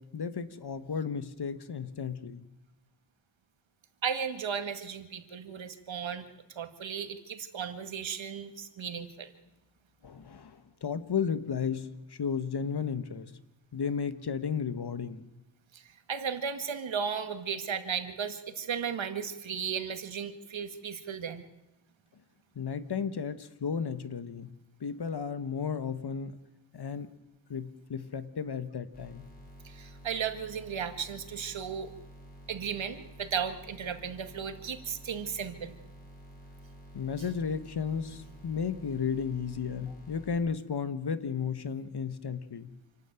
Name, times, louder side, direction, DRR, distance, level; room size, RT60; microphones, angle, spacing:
voice 1, 0.0-2.4 10.0-13.3 13.7-15.2 22.5-24.5 24.8-26.4 26.7-27.1 27.5-29.3 36.9-42.7, left 6 dB, 55° left, 12 dB, 1.5 m, -34 dB
voice 2, 4.0-6.2 6.6-9.3 15.7-15.8 16.1-21.4 29.6-31.9 32.5-35.7, right 7 dB, 70° right, 8 dB, 2.1 m, -35 dB
sound 1, 28.9-40.4, equal, 20° left, 7.9 m, -51 dB
27.5 x 12.0 x 9.1 m, 0.99 s
cardioid pair, 85°, 47 cm